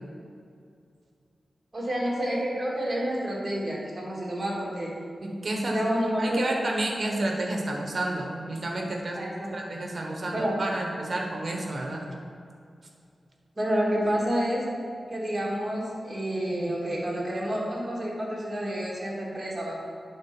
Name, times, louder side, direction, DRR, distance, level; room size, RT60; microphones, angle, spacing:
voice 1, 1.7-4.9 5.6-6.4 9.2-9.5 10.3-10.6 13.6-14.6 15.1-19.8, equal, 20° right, -5 dB, 1.9 m, -29 dB
voice 2, 5.2-5.8 6.2-9.2 9.5-12.0, right 1 dB, 45° right, 1 dB, 1.1 m, -30 dB
8.7 x 3.9 x 5.9 m, 2.4 s
wide cardioid pair, 165°, 0 cm